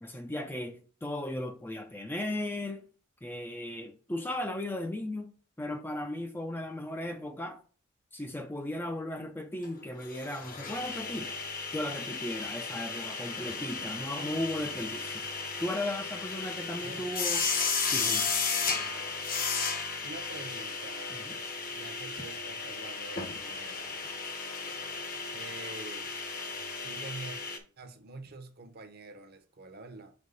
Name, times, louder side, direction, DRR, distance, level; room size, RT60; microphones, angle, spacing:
voice 1, 0.0-2.9 3.2-7.6 8.1-11.3 11.7-15.2 15.6-17.5 17.9-18.3 21.1-21.4, left 1 dB, 10° left, 0.5 m, -36 dB
sound 1, 9.6-9.7 9.9-27.6, left 4 dB, 40° left, 1.0 m, -34 dB
voice 2, 20.0-21.3 21.7-24.1 25.3-26.1 26.8-27.4 27.8-30.1, right 3 dB, 50° right, 0.9 m, -46 dB
5.4 x 3.7 x 5.3 m
head